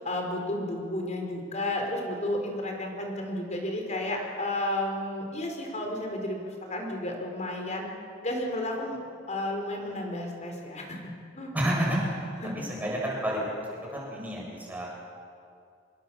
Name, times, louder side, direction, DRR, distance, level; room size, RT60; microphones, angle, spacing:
voice 1, 0.0-7.9 8.2-9.0 9.3-11.1 11.4-11.5 12.4-12.7, left 1 dB, 40° left, 2 dB, 4.7 m, -32 dB
voice 2, 11.5-12.0 12.6-13.5 13.9-14.9, right 1 dB, 10° right, -3 dB, 7.4 m, -29 dB
25.5 x 21.5 x 7.2 m, 2.4 s
head